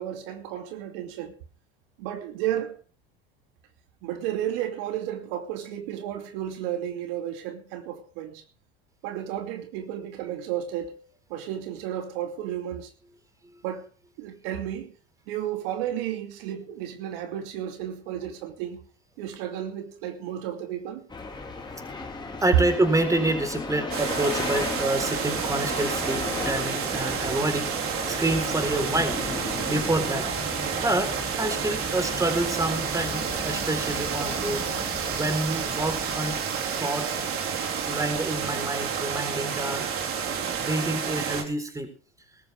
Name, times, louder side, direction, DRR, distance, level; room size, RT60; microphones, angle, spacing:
voice 1, 0.0-1.3 2.0-2.8 4.0-8.4 9.0-11.0 11.3-12.9 13.6-13.9 14.2-14.9 15.3-18.8 19.2-21.1, right 11 dB, 70° right, 2.8 m, -33 dB
sound 1, 21.1-36.4, left 3 dB, 15° left, 3.6 m, -36 dB
voice 2, 22.4-27.7 28.1-29.2 29.7-30.3 30.6-34.7 35.1-36.4 36.8-37.2 37.9-39.9 40.6-41.9, right 2 dB, 10° right, 3.9 m, -28 dB
sound 2, 23.9-41.4, right 7 dB, 45° right, 3.9 m, -30 dB
20.5 x 13.0 x 3.4 m
supercardioid pair, 100°, 30 cm